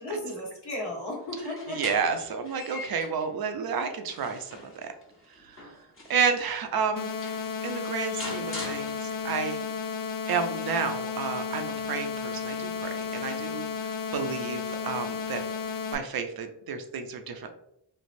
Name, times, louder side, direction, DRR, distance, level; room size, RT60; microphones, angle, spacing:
voice 1, 0.0-1.8 14.7-14.9, left 1 dB, 75° left, -3 dB, 1.3 m, -35 dB
sound 1, 1.2-3.3 3.8-6.4 6.9-7.0 7.2-9.4, left 2 dB, 30° left, 0.9 m, -43 dB
voice 2, 1.7-4.9 5.3-5.6 6.1-7.1 7.6-9.6 10.3-15.4 15.9-17.5, right 6 dB, 65° right, 6 dB, 0.6 m, -31 dB
sound 2, 7.0-16.0, left 5 dB, 55° left, 0.5 m, -33 dB
3.3 x 2.4 x 2.5 m, 0.77 s
cardioid pair, 65°, 40 cm